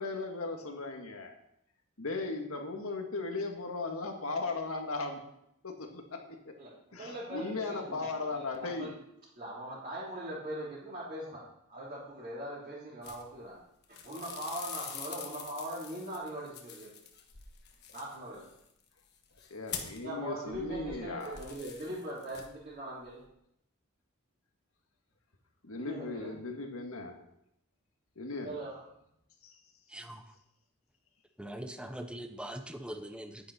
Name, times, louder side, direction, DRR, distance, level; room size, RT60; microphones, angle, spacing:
voice 1, 0.0-1.3 2.0-5.2 5.6-6.0 6.3-6.4 6.9-8.9 19.5-21.3 25.6-27.1 28.1-28.5 29.4-29.5, left 3 dB, 85° left, 3 dB, 1.8 m, -37 dB
voice 2, 6.6-8.9 9.4-11.4 11.7-13.6 13.9-17.0 17.9-18.5 20.0-23.2 25.8-26.3 28.4-28.8, right 1 dB, 40° right, -10 dB, 3.9 m, -41 dB
sound 1, 13.0-13.6 13.8-20.1 20.5-22.7 23.0-23.3, left 7 dB, 50° left, 1.4 m, -46 dB
voice 3, 29.9-30.3 31.4-33.5, right 1 dB, 5° right, 6 dB, 0.8 m, -42 dB
11.0 x 9.7 x 4.3 m, 0.78 s
head